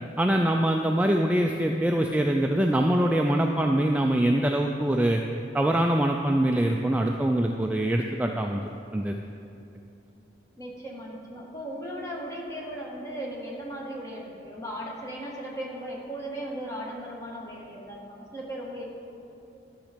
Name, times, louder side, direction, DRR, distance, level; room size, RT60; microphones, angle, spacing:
voice 1, 0.2-5.2 5.5-8.6 8.9-9.1, right 1 dB, 10° right, 2 dB, 0.3 m, -23 dB
voice 2, 10.6-18.8, right 1 dB, 15° left, -2 dB, 1.5 m, -37 dB
11.5 x 6.4 x 5.1 m, 2.7 s
head